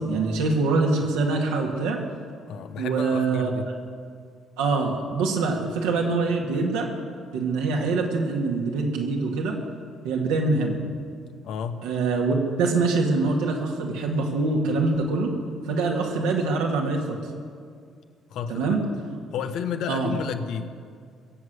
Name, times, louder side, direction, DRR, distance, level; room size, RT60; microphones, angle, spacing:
voice 1, 0.0-2.0 2.8-3.5 4.6-6.9 7.3-9.6 10.0-10.8 11.8-15.3 15.7-17.2 18.5-18.8 19.9-20.1, right 3 dB, 75° right, 0 dB, 2.4 m, -24 dB
voice 2, 2.5-3.7 11.4-11.9 18.3-19.0 19.3-20.7, left 7 dB, 65° left, 8 dB, 1.1 m, -32 dB
22.0 x 8.0 x 8.2 m, 2.2 s
hypercardioid pair, 45°, 0 cm